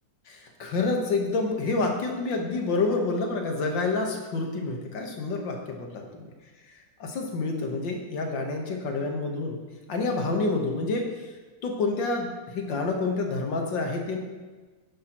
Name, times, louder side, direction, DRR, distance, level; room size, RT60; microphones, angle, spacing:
voice 1, 0.3-6.3 7.0-9.6 9.9-11.3 11.6-14.2, left 3 dB, 75° left, 2 dB, 2.0 m, -28 dB
10.5 x 10.5 x 3.0 m, 1.3 s
omnidirectional pair, 2.0 m